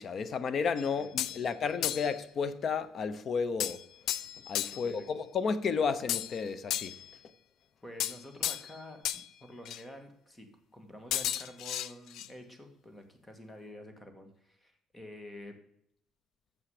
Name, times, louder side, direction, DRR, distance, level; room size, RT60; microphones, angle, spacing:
voice 1, 0.0-3.8 4.5-7.0, left 5 dB, 40° left, 0.9 m, -32 dB
sound 1, 0.8-1.4 1.8-2.2 3.6-4.9 6.1-7.1 8.0-8.8 9.1-9.3 9.7-9.8 11.1-12.3, left 12 dB, 70° left, 0.5 m, -34 dB
voice 2, 1.0-1.5 4.7-5.1 7.8-15.5, left 1 dB, 10° left, 1.9 m, -49 dB
13.5 x 7.2 x 5.0 m
cardioid pair, 135°, 0 cm